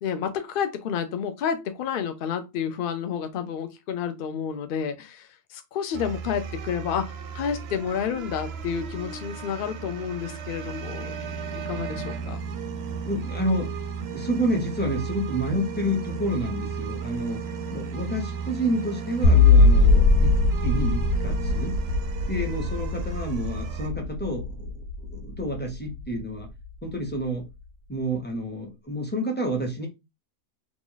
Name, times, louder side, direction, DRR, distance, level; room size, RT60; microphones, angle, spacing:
voice 1, 0.0-11.1 11.7-12.4, left 7 dB, 60° left, 0.5 m, -30 dB
sound 1, 5.9-23.9, right 6 dB, 65° right, 0.7 m, -34 dB
voice 2, 13.0-13.7 14.1-17.4 17.7-21.8 22.3-24.7 25.1-26.5 26.8-27.4 27.9-29.9, equal, 10° left, 0.6 m, -29 dB
sound 2, 19.2-26.4, left 3 dB, 85° left, 1.1 m, -21 dB
3.0 x 2.4 x 3.9 m
omnidirectional pair, 1.6 m